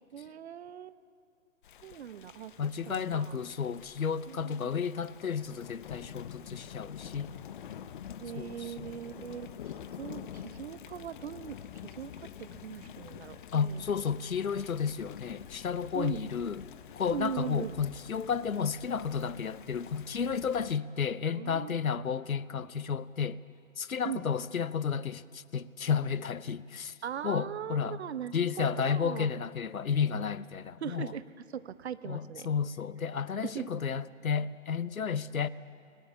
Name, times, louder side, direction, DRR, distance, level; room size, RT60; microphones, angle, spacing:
voice 1, 0.1-1.0 1.8-2.5 2.9-3.4 4.3-4.8 8.2-9.5 10.0-13.8 15.9-16.2 17.0-17.7 21.3-21.8 24.0-24.3 27.0-29.3 30.8-31.2 31.5-32.5 33.4-33.8, right 9 dB, 50° right, 0.9 m, -40 dB
Thunder / Rain, 1.6-20.8, left 9 dB, 40° left, 0.7 m, -47 dB
voice 2, 2.6-7.3 8.4-8.7 13.5-16.6 17.0-23.4 23.8-26.9 27.2-28.0 28.3-31.1 32.0-35.5, left 6 dB, 85° left, 0.8 m, -32 dB
19.5 x 19.5 x 7.2 m
figure-of-eight pair, 130°, 40 cm